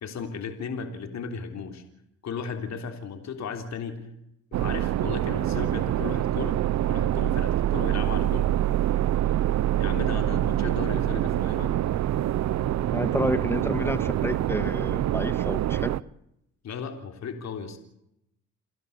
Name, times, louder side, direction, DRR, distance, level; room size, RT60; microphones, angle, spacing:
voice 1, 0.0-1.8 2.2-4.1 4.5-6.6 6.8-8.6 9.8-11.8 16.6-17.8, left 6 dB, 65° left, 6 dB, 3.4 m, -35 dB
sound 1, 4.5-16.0, right 12 dB, 65° right, 0.8 m, -25 dB
voice 2, 12.9-15.9, left 1 dB, 10° left, 12 dB, 1.8 m, -30 dB
29.5 x 12.0 x 8.4 m, 0.78 s
cardioid pair, 90°, 30 cm